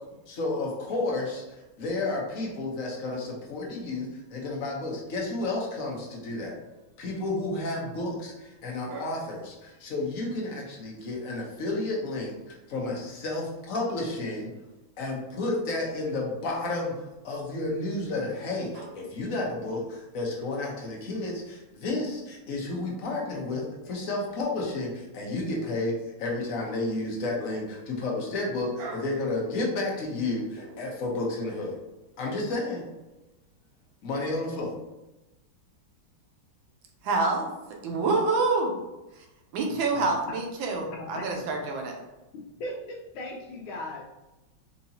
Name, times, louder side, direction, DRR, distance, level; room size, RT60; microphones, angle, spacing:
voice 1, 0.3-6.6 7.0-14.5 15.0-31.8 32.2-32.8 34.0-34.7, left 2 dB, 55° left, -2 dB, 0.9 m, -31 dB
voice 2, 37.0-37.5 37.8-38.8 39.5-42.0, right 3 dB, 75° right, 2 dB, 1.4 m, -27 dB
voice 3, 40.9-41.5 42.3-44.0, left 1 dB, 80° left, 0 dB, 1.4 m, -38 dB
4.7 x 2.7 x 2.7 m, 1.0 s
omnidirectional pair, 2.2 m